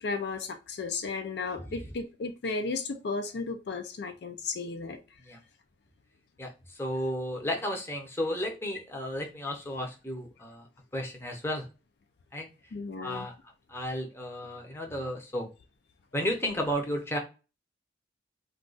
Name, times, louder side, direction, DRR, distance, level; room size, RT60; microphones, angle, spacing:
voice 1, 0.0-5.0 12.7-13.3, left 4 dB, 60° left, 0.4 m, -34 dB
voice 2, 6.8-10.7 10.9-11.6 12.3-12.5 13.0-13.3 13.7-15.5 16.1-17.2, equal, 15° left, 0.6 m, -33 dB
2.4 x 2.3 x 3.7 m
head